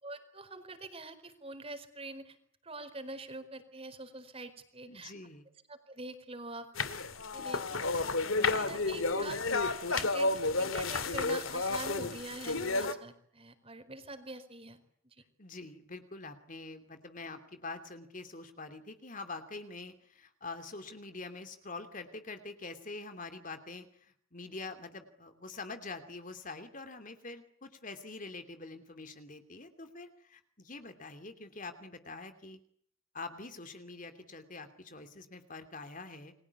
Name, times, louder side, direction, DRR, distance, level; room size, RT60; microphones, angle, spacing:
voice 1, 0.0-2.4 2.6-5.1 5.7-6.9 7.3-7.8 8.4-9.4 9.9-14.8, right 2 dB, 30° right, 9 dB, 4.6 m, -45 dB
voice 2, 4.8-5.4 8.3-8.9 15.4-32.6 33.1-36.3, left 3 dB, 40° left, 8 dB, 2.8 m, -45 dB
sound 1, 6.8-12.9, left 3 dB, 85° left, 2.6 m, -31 dB
29.5 x 22.5 x 8.4 m, 0.66 s
head